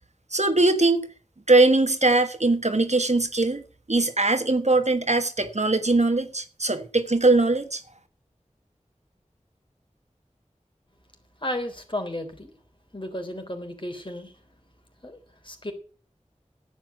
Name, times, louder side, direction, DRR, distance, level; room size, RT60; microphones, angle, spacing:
voice 1, 0.3-1.1 1.5-3.6 3.9-7.8, right 2 dB, 65° right, 1.4 m, -21 dB
voice 2, 11.4-12.5 12.9-14.3 15.0-15.2 15.4-15.7, left 1 dB, 40° left, 3.7 m, -33 dB
11.0 x 8.5 x 9.0 m
wide cardioid pair, 45°, 13 cm